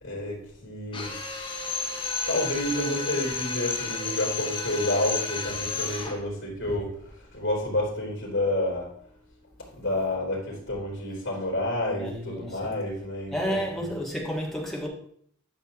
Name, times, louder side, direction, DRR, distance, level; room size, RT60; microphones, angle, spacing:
voice 1, 0.0-1.1 2.3-8.9 9.8-13.9, left 1 dB, 70° left, 3.1 m, -29 dB
Drill, 0.9-6.2, left 5 dB, 25° left, 1.2 m, -32 dB
voice 2, 11.9-12.9 13.3-14.9, equal, ahead, 1.5 m, -32 dB
11.0 x 5.8 x 2.9 m
head